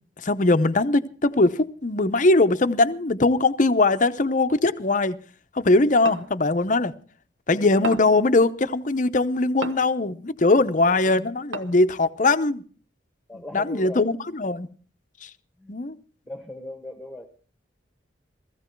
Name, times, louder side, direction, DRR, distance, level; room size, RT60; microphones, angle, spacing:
voice 1, 0.2-5.2 5.5-6.9 7.5-12.6 13.5-14.7 15.2-15.3 15.7-16.0, left 2 dB, 40° left, 0.7 m, -21 dB
sound 1, 6.1-6.4 7.8-8.2 9.6-10.0 11.5-11.9, right 3 dB, 75° right, 0.9 m, -33 dB
voice 2, 10.9-11.3 13.3-14.1 15.6-15.7 16.2-17.4, left 1 dB, ahead, 1.5 m, -39 dB
16.0 x 15.5 x 4.5 m
head